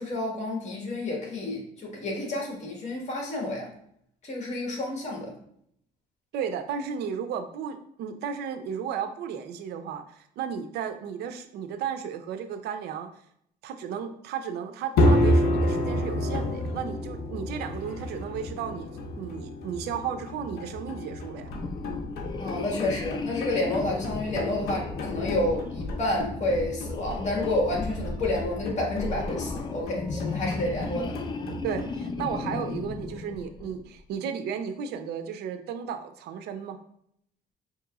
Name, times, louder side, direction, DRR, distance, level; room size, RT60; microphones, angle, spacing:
voice 1, 0.0-3.7 4.2-5.3 22.4-31.1, left 1 dB, 45° left, -1 dB, 1.5 m, -30 dB
voice 2, 6.3-13.1 13.6-18.9 19.2-21.5 31.6-36.8, right 7 dB, 75° right, 7 dB, 0.5 m, -34 dB
sound 1, 15.0-31.8, left 1 dB, 65° left, 0.7 m, -30 dB
sound 2, 21.4-33.9, left 3 dB, 25° left, 0.3 m, -35 dB
5.3 x 2.9 x 2.3 m, 0.69 s
cardioid pair, 110°, 17 cm